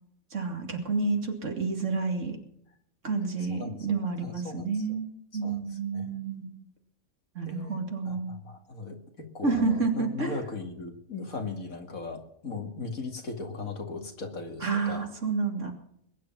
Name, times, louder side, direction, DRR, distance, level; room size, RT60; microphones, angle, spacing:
voice 1, 0.3-2.4 3.0-6.6 7.3-8.4 9.4-10.3 14.6-15.7, right 4 dB, 60° right, 4 dB, 2.7 m, -29 dB
voice 2, 3.4-5.0 5.4-6.2 7.4-15.0, left 3 dB, 75° left, 4 dB, 2.7 m, -38 dB
21.0 x 10.0 x 5.9 m, 0.72 s
omnidirectional pair, 1.5 m